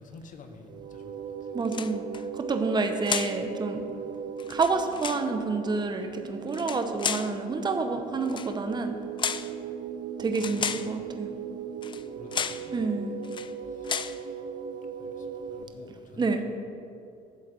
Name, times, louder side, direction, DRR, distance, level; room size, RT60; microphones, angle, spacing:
voice 1, 0.0-1.3 10.2-10.8 12.2-12.8 13.7-13.9 14.2-14.4 15.0-16.4, left 3 dB, 50° left, 6 dB, 1.1 m, -50 dB
sound 1, 0.7-15.6, right 7 dB, 55° right, 0.5 m, -38 dB
voice 2, 1.5-2.0 2.3-3.9 4.5-9.0 10.2-11.3 12.7-13.1 16.2-16.4, right 3 dB, 25° right, 6 dB, 0.8 m, -28 dB
sound 2, 1.6-2.2 3.1-3.4 4.4-5.3 6.5-7.3 8.3-8.5 9.2-9.5 10.3-10.9 11.8-12.0 12.3-12.7 13.2-13.5 13.8-14.2, left 7 dB, 30° left, 0.3 m, -32 dB
11.5 x 4.0 x 7.6 m, 2.5 s
cardioid pair, 110°, 17 cm